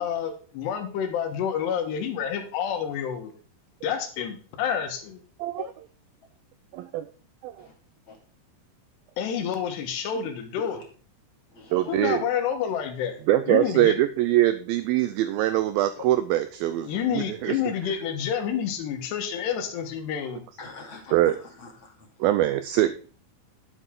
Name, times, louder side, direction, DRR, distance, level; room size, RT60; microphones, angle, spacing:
voice 1, 0.0-3.3 3.8-5.2 9.2-10.8 11.9-13.2 13.5-14.0 16.8-20.4, left 8 dB, 85° left, 6 dB, 3.5 m, -29 dB
voice 2, 6.7-7.1 7.4-7.7 11.7-12.2 13.3-16.9 17.1-17.6 21.1-21.3 22.2-23.1, right 14 dB, 85° right, 12 dB, 2.1 m, -23 dB
voice 3, 11.5-12.0 14.4-14.5 15.9-16.1 16.7-16.9 20.6-22.2, left 4 dB, 35° left, 0 dB, 2.6 m, -44 dB
9.7 x 7.9 x 3.7 m, 0.41 s
omnidirectional pair, 4.7 m